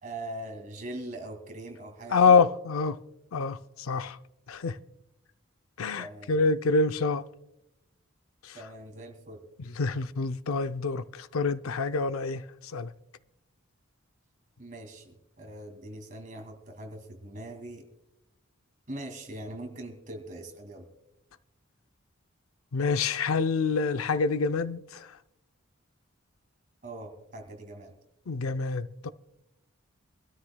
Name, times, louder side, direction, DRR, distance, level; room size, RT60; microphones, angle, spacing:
voice 1, 0.0-2.4 6.0-6.4 8.5-9.4 14.6-17.8 18.9-20.8 26.8-27.9, right 1 dB, 40° right, 2.3 m, -41 dB
voice 2, 2.1-3.0 3.3-4.2 4.5-4.8 5.8-7.2 9.8-12.4 12.7-12.9 22.7-25.1 28.3-29.1, left 4 dB, 80° left, 0.5 m, -26 dB
24.0 x 13.0 x 2.2 m
head